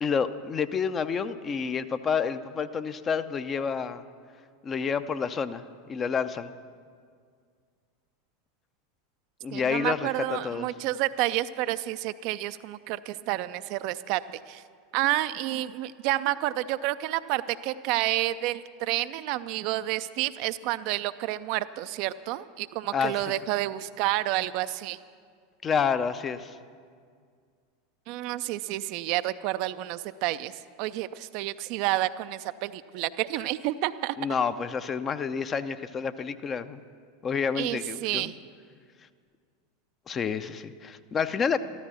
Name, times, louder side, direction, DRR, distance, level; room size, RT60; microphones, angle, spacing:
voice 1, 0.0-4.0 4.6-6.5 9.4-10.7 22.9-23.2 25.6-26.6 34.2-36.8 37.2-38.3 40.1-41.6, left 6 dB, 25° left, 11 dB, 0.6 m, -29 dB
voice 2, 9.5-14.6 14.9-25.0 28.1-30.5 30.8-34.1 37.6-38.3, right 16 dB, 50° right, 13 dB, 0.4 m, -29 dB
14.0 x 13.0 x 6.2 m, 2.1 s
figure-of-eight pair, 85°, 0 cm